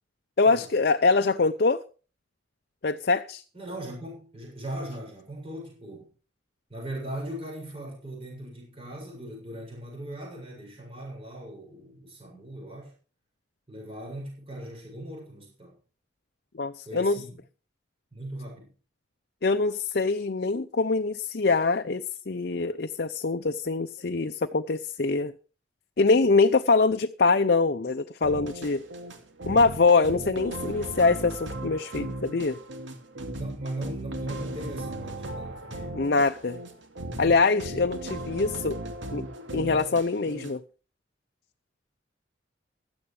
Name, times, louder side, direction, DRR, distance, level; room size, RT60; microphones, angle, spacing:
voice 1, 0.4-1.8 2.8-3.4 16.5-17.2 19.4-25.3 26.0-28.8 29.5-32.6 35.9-36.6 37.2-38.8 39.1-39.3 39.5-40.6, left 3 dB, 55° left, 0.7 m, -24 dB
voice 2, 3.5-6.1 6.7-12.9 13.7-15.8 16.9-17.4 18.1-18.7 33.4-36.0, right 1 dB, 30° right, 6.9 m, -39 dB
sound 1, 28.2-40.5, right 1 dB, 80° right, 2.5 m, -37 dB
16.5 x 12.5 x 3.3 m
head